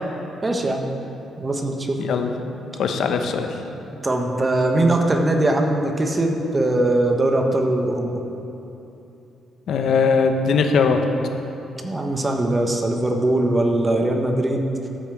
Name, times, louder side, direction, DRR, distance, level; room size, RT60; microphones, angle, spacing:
voice 1, 0.4-0.9 1.4-2.0 4.0-8.2 11.8-14.7, right 1 dB, 25° right, 3 dB, 1.2 m, -21 dB
voice 2, 2.0-2.3 2.8-3.5 9.7-11.0, left 5 dB, 70° left, 5 dB, 1.0 m, -20 dB
12.5 x 5.6 x 7.5 m, 2.9 s
cardioid pair, 90°, 0 cm